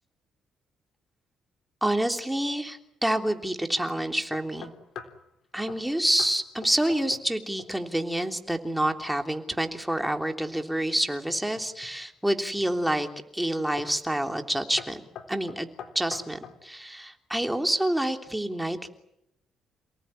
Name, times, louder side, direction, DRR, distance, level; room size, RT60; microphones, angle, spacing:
voice 1, 1.8-4.7 5.5-13.1 13.3-15.0 15.3-15.7 15.9-18.9, right 1 dB, 5° right, 5 dB, 3.2 m, -28 dB
sound 1, 4.3-5.2 5.7-5.9 6.2-6.4 6.6-7.3 7.6-8.0 11.3-12.0 12.6-13.0 13.8-14.0 14.3-14.5 14.8-16.6, left 7 dB, 65° left, 3.8 m, -43 dB
29.0 x 18.5 x 10.0 m, 0.83 s
cardioid pair, 90°, 0 cm